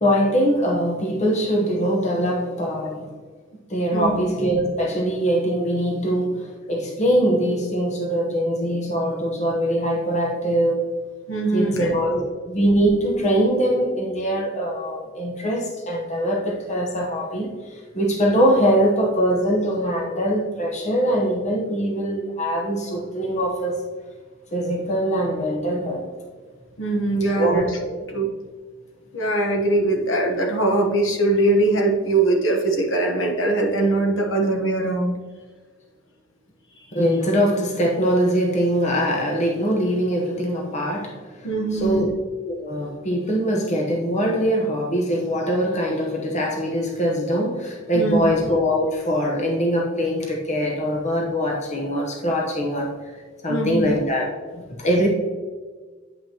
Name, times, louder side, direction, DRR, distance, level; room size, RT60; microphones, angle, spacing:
voice 1, 0.0-3.1 3.7-10.9 11.5-23.8 24.5-26.1 27.3-28.0 36.9-42.1 42.5-53.0 53.4-55.1, equal, 35° left, 0 dB, 0.9 m, -22 dB
voice 2, 3.9-4.2 11.3-11.9 26.8-27.8 28.1-28.3 29.1-35.2 36.8-36.9 41.4-42.1 47.9-48.3 53.5-53.9, right 2 dB, 65° left, 2 dB, 1.1 m, -21 dB
8.9 x 5.6 x 2.9 m, 1.4 s
head